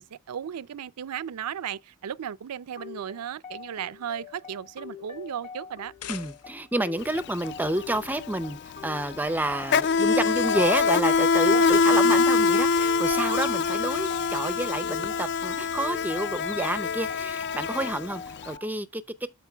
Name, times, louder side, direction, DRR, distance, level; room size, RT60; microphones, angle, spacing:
voice 1, 0.0-5.9 11.5-12.2, right 8 dB, 85° right, 0.4 m, -35 dB
sound 1, 2.8-18.8, left 6 dB, 30° left, 1.2 m, -44 dB
sound 2, 5.7-6.8, left 9 dB, 85° left, 0.7 m, -42 dB
voice 2, 6.1-19.0, right 1 dB, 10° right, 0.5 m, -29 dB
Insect, 7.0-7.2 7.5-18.5, left 5 dB, 50° left, 0.3 m, -24 dB
13.0 x 4.4 x 2.2 m
head